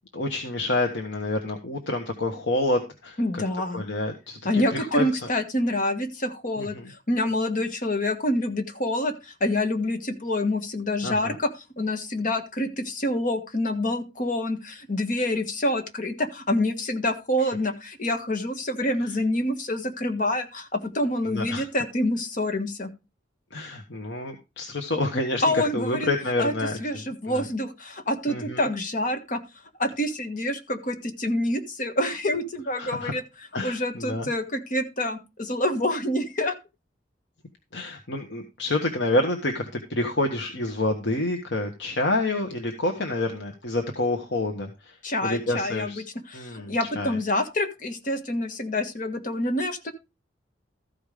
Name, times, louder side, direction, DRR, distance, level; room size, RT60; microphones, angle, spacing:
voice 1, 0.1-3.4 3.7-5.1 6.6-6.9 11.0-11.4 21.2-21.6 23.5-27.4 28.3-28.6 32.8-33.1 33.5-34.3 37.7-45.0 45.2-46.0 46.3-47.2, left 2 dB, 75° left, 3 dB, 1.3 m, -28 dB
voice 2, 3.2-3.9 4.4-11.5 11.8-22.9 25.4-26.1 26.4-26.5 26.8-29.4 29.8-33.2 33.6-36.5 45.0-49.9, left 1 dB, 45° left, 6 dB, 1.5 m, -27 dB
14.0 x 5.3 x 5.0 m, 0.27 s
head